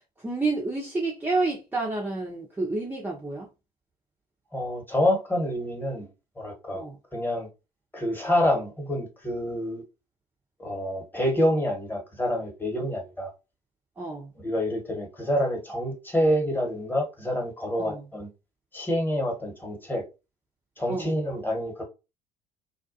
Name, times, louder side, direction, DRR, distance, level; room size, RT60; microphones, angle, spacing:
voice 1, 0.2-3.5 6.7-7.0 14.0-14.3 17.8-18.0 20.9-21.1, right 3 dB, 10° right, 0.6 m, -29 dB
voice 2, 4.5-6.1 6.4-6.8 7.1-7.5 7.9-9.8 10.6-13.3 14.4-18.3 18.7-20.0 20.8-21.8, left 1 dB, 10° left, 1.2 m, -27 dB
2.4 x 2.2 x 2.6 m
figure-of-eight pair, 60°, 20 cm